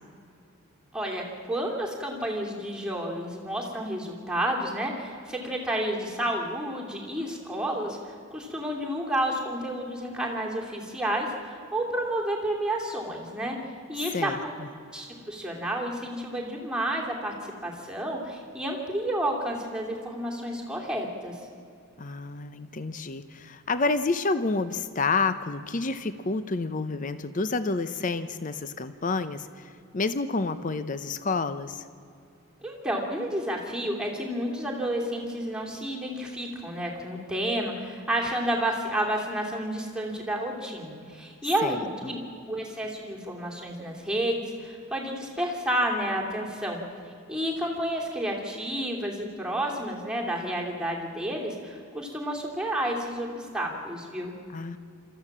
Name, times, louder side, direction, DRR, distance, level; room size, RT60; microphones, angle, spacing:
voice 1, 1.5-13.6 13.9-14.3 14.9-17.3 17.6-21.4 32.6-42.2 42.5-46.8 47.3-54.3, right 1 dB, 5° right, -1 dB, 2.7 m, -30 dB
voice 2, 14.1-14.7 22.0-31.9 41.6-41.8 54.5-54.8, left 3 dB, 40° left, 12 dB, 0.7 m, -29 dB
27.0 x 14.0 x 7.3 m, 2.5 s
head